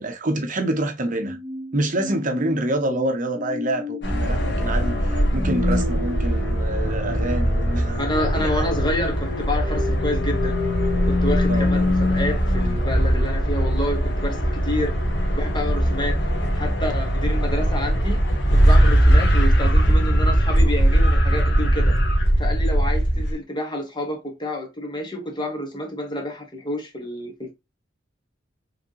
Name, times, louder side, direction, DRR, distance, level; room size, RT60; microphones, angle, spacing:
voice 1, 0.0-1.4 1.7-8.7 11.5-11.9, right 1 dB, 45° right, 0.8 m, -27 dB
sound 1, 1.2-11.6, left 3 dB, 5° right, 1.9 m, -34 dB
sound 2, 4.0-23.3, equal, 65° left, 1.6 m, -20 dB
voice 2, 8.0-10.6 11.0-14.9 15.3-16.2 16.5-18.2 18.5-22.0 22.4-27.5, left 1 dB, 25° left, 1.5 m, -29 dB
5.1 x 3.5 x 2.9 m
head